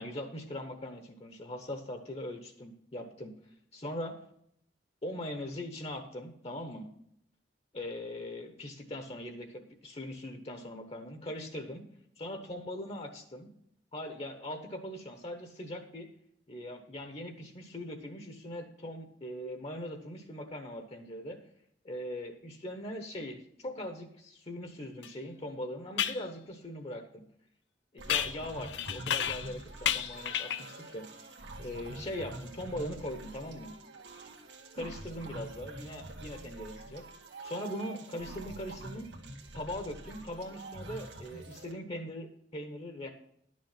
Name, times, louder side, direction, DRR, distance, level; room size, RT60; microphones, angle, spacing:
voice 1, 0.0-3.3 3.7-4.1 5.0-6.9 7.7-11.8 12.2-13.5 13.9-16.1 16.5-21.4 21.8-27.2 27.9-31.3 31.6-33.7 34.7-37.0 37.4-39.1 39.5-43.1, left 1 dB, 35° left, 6 dB, 1.0 m, -41 dB
sound 1, 25.0-25.1 26.0-26.2 28.1-29.5 29.8-30.7, left 9 dB, 85° left, 0.5 m, -32 dB
sound 2, 28.0-41.7, right 2 dB, 85° right, 1.7 m, -46 dB
11.0 x 6.3 x 5.8 m, 0.70 s
head